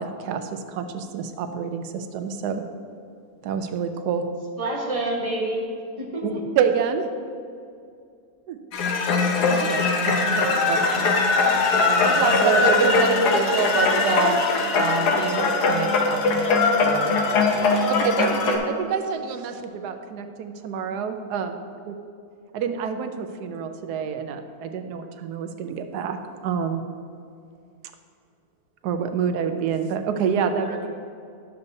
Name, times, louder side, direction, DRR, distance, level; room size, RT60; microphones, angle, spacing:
voice 1, 0.0-2.6 3.4-4.3 6.2-7.1 8.5-8.6 9.7-11.1 11.8-12.9 18.0-21.6 21.9-22.0 22.5-26.2 26.4-26.8 28.8-30.8, right 7 dB, 90° right, 7 dB, 1.2 m, -27 dB
voice 2, 4.6-5.6 6.0-6.4 10.3-10.4 30.6-30.9, right 1 dB, 25° right, -3 dB, 1.2 m, -28 dB
sound 1, 8.7-18.6, left 4 dB, 85° left, 1.4 m, -21 dB
voice 3, 12.0-14.4 14.7-16.5 16.8-17.6, right 4 dB, 65° right, 4 dB, 0.6 m, -26 dB
11.5 x 6.8 x 2.7 m, 2.4 s
omnidirectional pair, 1.7 m